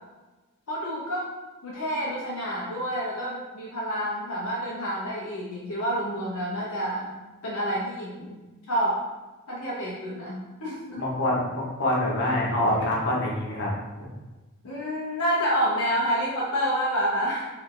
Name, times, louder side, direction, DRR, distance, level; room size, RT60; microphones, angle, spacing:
voice 1, 0.7-1.3 1.6-7.1 7.4-8.4 8.7-9.0 9.5-11.0 14.6-17.5, equal, 70° left, -6 dB, 0.9 m, -28 dB
voice 2, 11.0-13.7, left 1 dB, 50° left, -4 dB, 1.2 m, -25 dB
3.4 x 3.4 x 3.8 m, 1.2 s
head